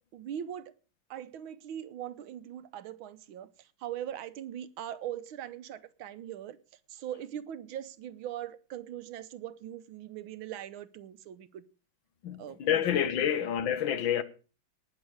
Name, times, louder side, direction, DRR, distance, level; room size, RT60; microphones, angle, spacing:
voice 1, 0.1-0.7 1.1-11.6 12.4-13.0 13.3-13.4, right 11 dB, 85° right, 1.7 m, -41 dB
voice 2, 12.2-14.2, left 9 dB, 70° left, 1.8 m, -28 dB
18.5 x 6.3 x 6.3 m
omnidirectional pair, 2.2 m